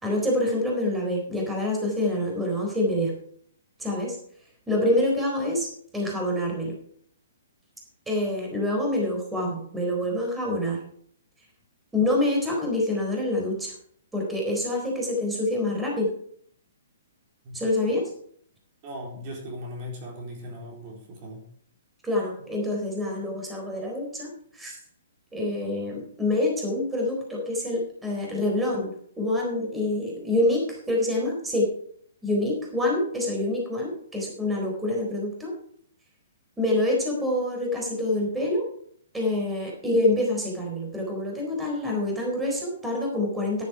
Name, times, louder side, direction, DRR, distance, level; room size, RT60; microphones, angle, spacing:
voice 1, 0.0-3.1 3.8-4.2 4.7-5.7 5.9-6.7 8.1-10.8 11.9-13.7 14.1-16.1 17.5-18.1 22.0-24.8 25.3-31.7 32.2-35.5 36.6-38.7 39.1-43.6, left 1 dB, 10° right, -1 dB, 4.0 m, -26 dB
voice 2, 18.8-21.4, equal, 40° right, -1 dB, 4.0 m, -38 dB
11.0 x 10.0 x 4.9 m, 0.62 s
figure-of-eight pair, 125°, 0 cm